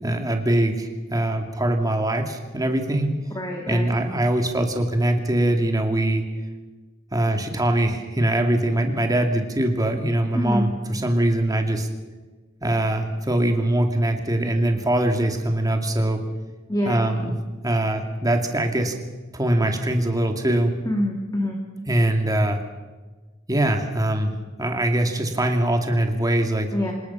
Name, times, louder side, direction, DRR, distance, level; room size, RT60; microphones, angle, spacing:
voice 1, 0.0-3.2 3.7-6.2 7.1-11.9 12.6-16.2 16.8-17.3 17.6-18.9 19.3-20.7 21.9-22.6 23.5-24.3 24.6-26.7, right 1 dB, 20° right, 4 dB, 2.4 m, -22 dB
voice 2, 3.3-3.9 10.3-10.6 16.7-17.0 20.8-21.6 26.7-26.9, equal, 20° left, 1 dB, 2.6 m, -25 dB
27.0 x 19.0 x 5.8 m, 1.3 s
head